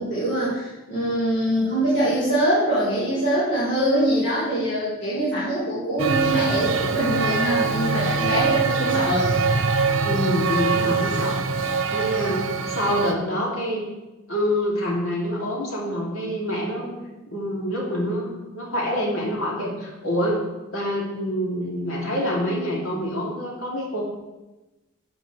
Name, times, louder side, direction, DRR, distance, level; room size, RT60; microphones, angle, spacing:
voice 1, 0.0-9.3, right 1 dB, 55° left, -11 dB, 3.9 m, -23 dB
Male speech man speaking, 6.0-13.1, right 4 dB, 60° right, 0.9 m, -23 dB
voice 2, 10.0-13.9 14.3-17.0 17.3-20.4 20.7-24.0, equal, 75° left, -3 dB, 3.1 m, -26 dB
14.0 x 7.9 x 3.4 m, 1.1 s
head